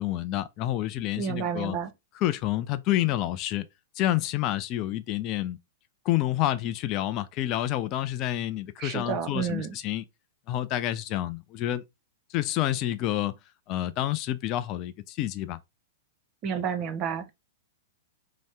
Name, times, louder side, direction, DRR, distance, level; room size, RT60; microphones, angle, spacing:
voice 1, 0.0-1.8 2.1-3.6 4.0-5.6 6.1-10.0 10.5-11.8 12.3-13.3 13.7-15.6, left 13 dB, 40° left, 0.3 m, -28 dB
voice 2, 1.2-1.9 8.8-9.8 16.4-17.3, right 7 dB, 40° right, 0.6 m, -30 dB
2.7 x 2.0 x 3.4 m
figure-of-eight pair, 105°, 0 cm